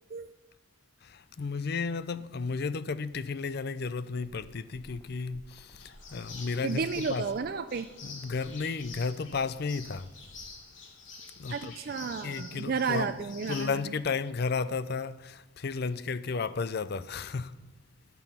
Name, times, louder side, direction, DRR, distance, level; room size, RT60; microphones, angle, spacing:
voice 1, 1.0-7.3 8.0-10.1 11.4-11.7 12.2-13.1 13.5-17.6, left 4 dB, 50° left, 0.5 m, -33 dB
sound 1, 4.2-10.5, equal, 20° left, 1.2 m, -55 dB
sound 2, 5.8-13.7, left 4 dB, 70° left, 2.5 m, -47 dB
voice 2, 6.6-7.9 11.5-13.8, right 5 dB, 50° right, 0.4 m, -32 dB
17.5 x 7.0 x 5.6 m
head